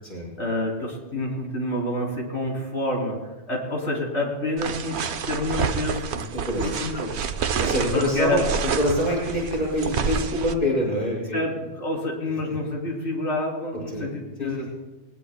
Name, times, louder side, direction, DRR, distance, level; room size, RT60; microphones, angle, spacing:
voice 1, 0.4-3.2 3.5-5.0 5.3-6.1 6.6-7.3 7.9-8.4 11.3-14.7, left 1 dB, 85° left, -1 dB, 3.7 m, -28 dB
sound 1, 4.6-10.5, right 6 dB, 70° right, 1.0 m, -28 dB
voice 2, 6.1-6.8 7.6-11.4 13.9-14.1 14.4-14.5, equal, 50° left, -5 dB, 6.2 m, -25 dB
20.0 x 20.0 x 2.3 m, 1.2 s
omnidirectional pair, 1.2 m